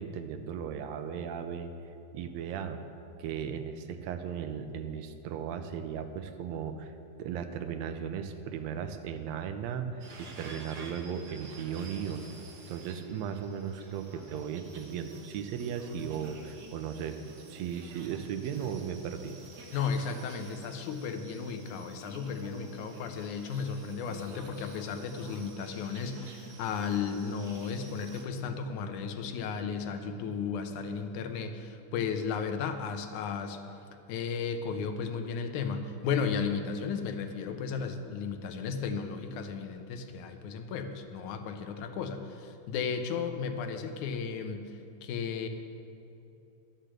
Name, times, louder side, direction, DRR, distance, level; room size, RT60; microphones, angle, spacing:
voice 1, 0.0-1.7 2.1-2.8 3.2-6.9 7.2-12.3 12.7-17.2 17.5-19.4, right 7 dB, 75° right, 8 dB, 1.8 m, -36 dB
sound 1, 10.0-28.2, right 3 dB, 60° right, 1.1 m, -50 dB
voice 2, 19.7-33.6 34.1-45.5, left 6 dB, 85° left, 7 dB, 2.2 m, -34 dB
11.5 x 6.7 x 7.5 m, 2.9 s
omnidirectional pair, 3.4 m